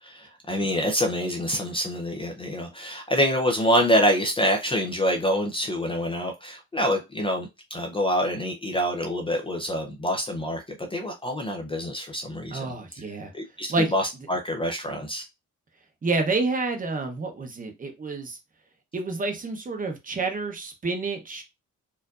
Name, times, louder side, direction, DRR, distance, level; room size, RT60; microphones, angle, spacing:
voice 1, 0.0-12.6 13.3-15.2, equal, 15° left, 0.5 m, -26 dB
voice 2, 12.5-13.3 13.7-13.9 16.0-18.4 18.9-21.4, right 3 dB, 25° right, 0.7 m, -28 dB
4.4 x 2.5 x 2.4 m
cardioid pair, 160°, 31 cm